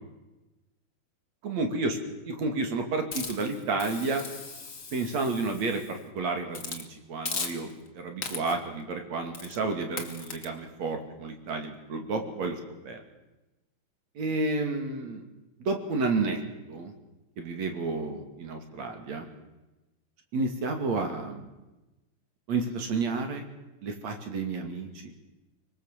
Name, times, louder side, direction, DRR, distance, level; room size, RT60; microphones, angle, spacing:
voice 1, 1.4-2.0 2.3-4.2 4.9-7.7 7.9-12.6 12.8-13.0 14.2-15.2 15.7-16.4 16.7-16.9 17.4-19.3 20.3-21.4 22.5-23.4 23.8-24.9, right 3 dB, 45° right, 5 dB, 3.2 m, -31 dB
Hiss, 3.1-6.0 6.5-6.8 7.2-7.9 8.2-8.7 9.3-9.6 10.0-10.4, left 4 dB, 90° left, 0.7 m, -38 dB
25.0 x 21.0 x 7.6 m, 1.0 s
omnidirectional pair, 5.3 m